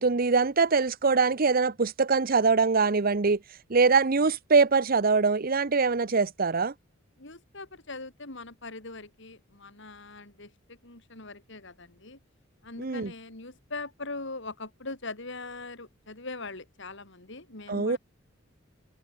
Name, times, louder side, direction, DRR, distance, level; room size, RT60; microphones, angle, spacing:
voice 1, 0.0-3.4 3.7-6.7 12.8-13.1 17.7-18.0, right 4 dB, 45° right, 0.8 m, -23 dB
voice 2, 7.2-12.2 12.6-18.0, left 3 dB, 60° left, 3.8 m, -41 dB
head